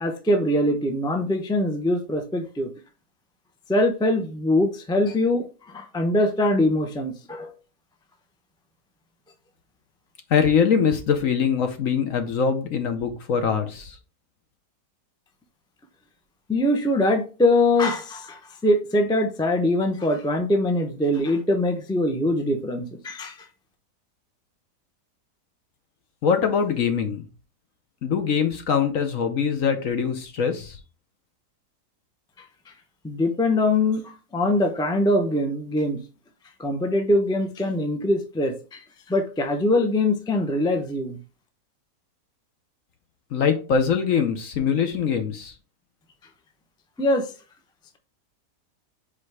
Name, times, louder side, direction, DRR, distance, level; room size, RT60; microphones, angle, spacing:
voice 1, 0.0-2.7 3.7-7.5 16.5-23.4 33.0-36.0 36.6-41.2 47.0-47.3, left 1 dB, 5° left, 0.5 m, -23 dB
voice 2, 10.3-14.0 26.2-27.2 28.0-30.8 43.3-45.5, left 6 dB, 60° left, 1.1 m, -23 dB
5.0 x 4.1 x 4.7 m
omnidirectional pair, 1.8 m